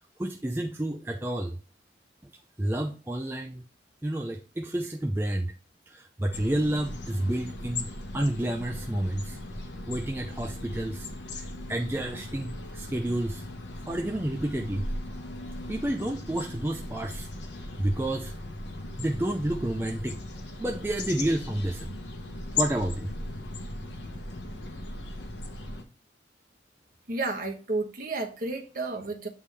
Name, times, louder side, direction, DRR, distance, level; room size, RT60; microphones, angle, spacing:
voice 1, 0.2-1.6 2.6-3.6 4.0-5.5 5.9-7.9 8.1-9.4 9.9-13.4 13.9-14.8 15.7-17.3 17.8-18.3 19.0-20.2 20.6-21.9 22.6-23.1, right 1 dB, 10° right, 0.4 m, -30 dB
sound 1, 6.3-25.8, left 2 dB, 75° left, 1.0 m, -38 dB
voice 2, 27.1-29.3, right 2 dB, 50° right, 1.2 m, -31 dB
8.3 x 3.6 x 3.3 m
head